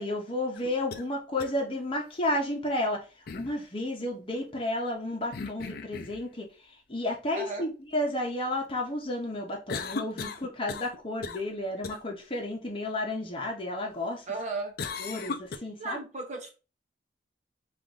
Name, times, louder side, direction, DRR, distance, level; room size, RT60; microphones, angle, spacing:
voice 1, 0.0-3.0 3.3-6.5 6.9-14.2 15.0-16.0, left 1 dB, 30° left, 0.9 m, -32 dB
sound 1, 0.5-1.0 1.4-1.5 3.3-3.6 5.3-6.2 9.7-11.0 11.2-11.5 11.8-12.0 14.8-15.6, left 4 dB, 55° left, 0.4 m, -36 dB
voice 2, 7.3-7.7 14.3-14.7 15.8-16.5, right 3 dB, 40° right, 1.0 m, -35 dB
3.7 x 2.5 x 3.7 m
head